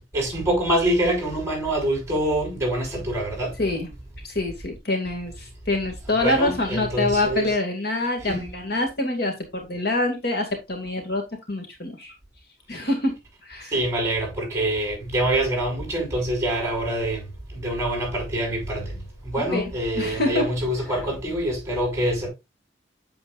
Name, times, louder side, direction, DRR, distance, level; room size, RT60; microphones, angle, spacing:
voice 1, 0.1-3.6 6.2-7.5 8.2-8.5 13.7-17.2 17.5-19.0 19.2-22.3, right 1 dB, 15° right, 6.0 m, -25 dB
voice 2, 3.6-3.9 4.2-11.2 11.5-12.1 12.7-13.1 13.5-13.7 19.4-20.5, left 2 dB, 55° left, 2.3 m, -26 dB
8.6 x 7.6 x 2.5 m
head